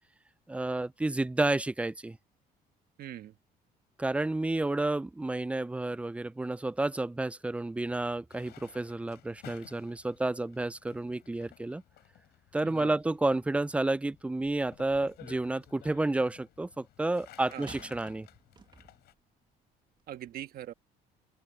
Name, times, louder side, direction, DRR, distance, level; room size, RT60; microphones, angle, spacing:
voice 1, 0.5-2.2 4.0-11.8 12.5-18.3, right 2 dB, 5° right, 0.4 m, -31 dB
voice 2, 3.0-3.3 12.6-13.0 17.5-17.7 20.1-20.7, right 12 dB, 65° right, 1.5 m, -42 dB
sound 1, 8.3-19.1, left 14 dB, 75° left, 7.8 m, -56 dB
sound 2, 14.4-15.2 17.7-19.2 20.0-20.1, right 5 dB, 25° right, 1.6 m, -52 dB
open air
cardioid pair, 110°, 17 cm